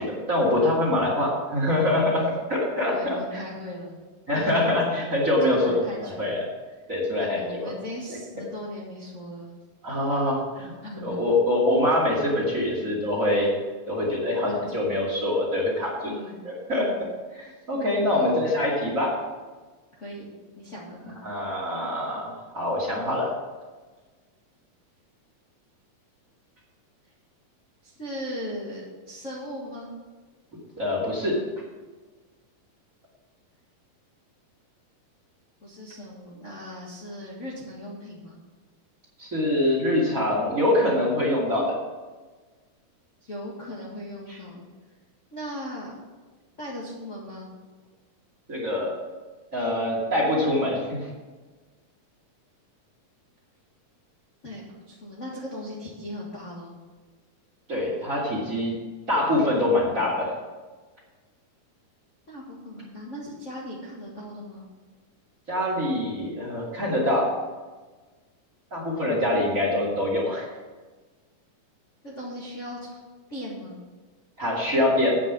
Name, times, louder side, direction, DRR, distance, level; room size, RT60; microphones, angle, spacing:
voice 1, 0.0-3.4 4.3-6.4 6.9-7.7 9.8-10.7 11.0-13.5 13.9-16.1 16.4-16.9 17.3-19.1 21.2-23.3 30.8-31.4 39.2-41.7 44.3-44.4 48.5-49.0 49.5-51.1 57.7-58.7 59.1-60.3 65.5-67.3 68.7-70.5 74.4-75.2, left 1 dB, 25° right, -3 dB, 2.6 m, -24 dB
voice 2, 2.9-4.0 5.5-6.3 7.2-9.5 10.8-11.2 14.5-14.9 16.0-16.4 16.7-17.1 18.0-18.3 19.9-21.2 27.8-29.9 35.6-38.4 43.2-44.7 45.3-45.9 46.6-47.5 54.4-56.8 62.3-64.7 72.0-73.0 73.3-73.8, equal, 30° left, -5 dB, 1.5 m, -38 dB
8.9 x 7.6 x 7.3 m, 1.3 s
omnidirectional pair, 3.8 m